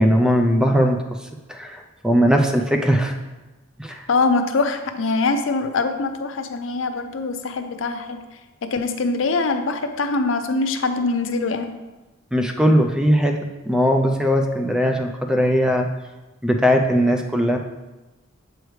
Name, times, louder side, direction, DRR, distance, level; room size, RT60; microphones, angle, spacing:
voice 1, 0.0-3.1 3.8-4.1 12.3-13.4 13.6-15.9 16.4-17.6, equal, 5° right, 3 dB, 0.4 m, -19 dB
voice 2, 4.1-8.2 8.6-11.7, left 3 dB, 70° left, 7 dB, 0.5 m, -23 dB
7.7 x 4.8 x 3.2 m, 1.1 s
head